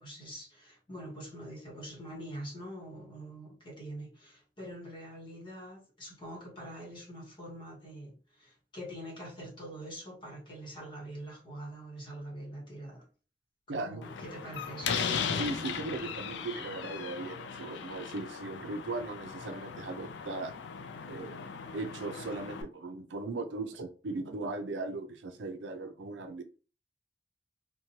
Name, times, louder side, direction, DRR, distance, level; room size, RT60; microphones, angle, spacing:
voice 1, 0.0-13.1 13.7-14.9, right 1 dB, 30° left, 1.0 m, -44 dB
voice 2, 13.7-14.0 15.3-20.5 21.1-26.4, right 3 dB, 90° right, 0.5 m, -38 dB
Slam, 14.0-22.6, left 6 dB, 70° left, 0.4 m, -37 dB
2.9 x 2.2 x 2.7 m
head